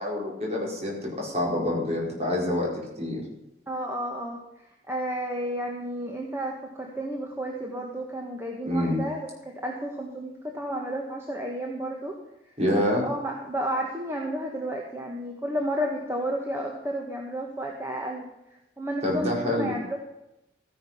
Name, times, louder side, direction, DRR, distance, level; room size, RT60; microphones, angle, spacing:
voice 1, 0.0-2.7 3.0-3.2 8.7-9.0 12.6-13.1 19.0-19.8, left 1 dB, 35° right, -3 dB, 5.1 m, -26 dB
voice 2, 3.7-4.4 4.9-9.3 9.6-12.1 13.0-18.3 18.8-20.0, equal, 15° right, 0 dB, 1.5 m, -32 dB
15.0 x 10.5 x 5.8 m, 0.89 s
head